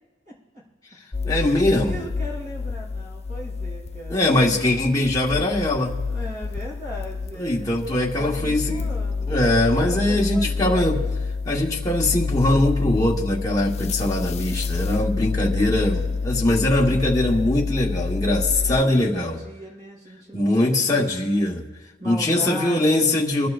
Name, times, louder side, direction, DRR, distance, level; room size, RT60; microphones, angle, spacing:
voice 1, 0.3-0.6 1.4-4.4 6.1-9.3 9.7-11.0 18.5-21.1 22.0-23.1, equal, 45° right, -5 dB, 5.3 m, -38 dB
sound 1, 1.1-18.8, left 4 dB, 35° left, 0.5 m, -28 dB
voice 2, 1.2-2.0 4.1-5.9 7.4-8.9 9.3-11.0 11.4-19.4 20.3-21.6 22.0-23.5, left 1 dB, 20° left, -3 dB, 1.4 m, -21 dB
26.0 x 12.0 x 2.6 m, 1.2 s
head